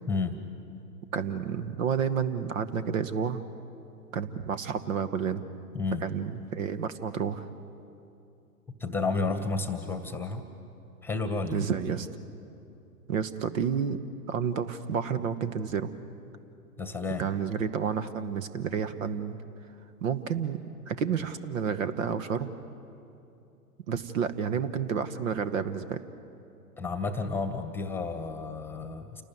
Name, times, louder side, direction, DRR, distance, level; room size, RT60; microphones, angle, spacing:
voice 1, 0.1-0.4 5.7-6.1 8.8-10.4 11.0-11.7 16.8-17.3 26.8-29.2, left 4 dB, 5° left, 9 dB, 1.5 m, -31 dB
voice 2, 1.1-3.5 4.1-5.4 6.0-7.5 11.5-12.1 13.1-15.9 17.2-19.4 20.0-20.6 20.9-22.5 23.9-26.0, right 7 dB, 55° right, 12 dB, 1.4 m, -30 dB
28.5 x 19.0 x 9.4 m, 2.7 s
figure-of-eight pair, 115°, 47 cm